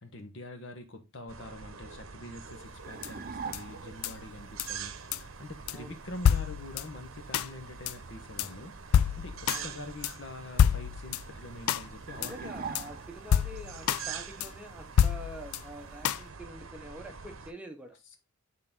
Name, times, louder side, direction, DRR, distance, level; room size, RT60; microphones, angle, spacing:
voice 1, 0.0-5.0 5.4-8.7 9.2-13.0 18.1-18.2, left 2 dB, 60° left, 1.1 m, -45 dB
sound 1, 1.3-17.5, right 6 dB, 70° right, 0.8 m, -45 dB
sound 2, 2.8-4.0 12.1-13.4, right 5 dB, 40° right, 0.5 m, -41 dB
sound 3, 3.0-3.1 3.5-3.6 4.0-4.1 4.6-4.7 5.1-5.2 5.7-5.8 6.2-6.9 7.3-7.5 7.9-8.0 8.4-8.5 8.9-9.6 10.0-10.1 10.6-11.3 11.7-11.9 12.2-12.3 12.7-12.8 13.3-14.0 14.4-14.5 15.0-15.6 16.0-16.2, left 8 dB, 90° left, 0.4 m, -26 dB
voice 2, 12.2-18.0, right 1 dB, 5° right, 0.8 m, -46 dB
6.6 x 3.8 x 3.7 m
head